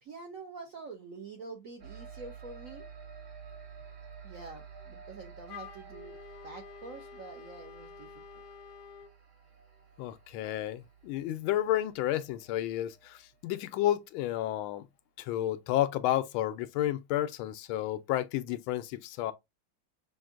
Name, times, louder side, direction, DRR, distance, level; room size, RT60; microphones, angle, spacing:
voice 1, 0.0-2.8 4.2-6.2 6.4-8.2, right 4 dB, 65° right, 0.8 m, -46 dB
sound 1, 1.8-13.6, right 6 dB, 45° right, 1.2 m, -51 dB
Wind instrument woodwind instrument, 5.5-9.1, left 7 dB, 70° left, 1.0 m, -49 dB
voice 2, 10.0-14.8 15.2-19.3, left 13 dB, 90° left, 1.4 m, -31 dB
6.0 x 2.6 x 2.4 m
omnidirectional pair, 2.2 m